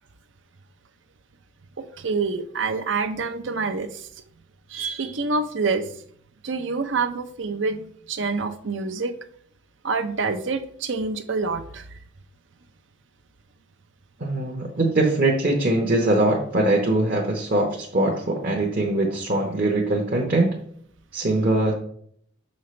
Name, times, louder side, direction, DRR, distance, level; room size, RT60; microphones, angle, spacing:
voice 1, 1.8-4.1 4.7-5.9 6.4-9.1 9.8-12.0, right 4 dB, 70° right, 9 dB, 0.7 m, -27 dB
voice 2, 14.2-20.5 21.1-21.7, right 2 dB, 50° right, 0 dB, 1.0 m, -22 dB
6.8 x 5.5 x 3.2 m, 0.62 s
head